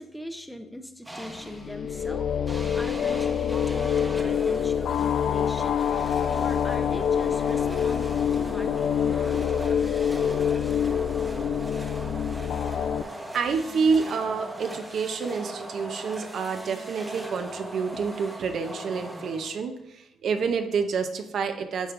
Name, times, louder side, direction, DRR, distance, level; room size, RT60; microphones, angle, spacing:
voice 1, 0.0-9.4, left 1 dB, 5° left, 7 dB, 0.6 m, -41 dB
sound 1, 1.1-15.9, left 3 dB, 45° left, 1.0 m, -53 dB
sound 2, 1.1-1.7 2.5-19.8, right 1 dB, 10° right, 0.9 m, -39 dB
sound 3, 1.4-13.0, left 8 dB, 75° left, 0.3 m, -26 dB
voice 2, 12.8-21.9, right 5 dB, 65° right, 7 dB, 0.6 m, -28 dB
8.9 x 5.1 x 2.5 m, 0.87 s
cardioid pair, 90°, 0 cm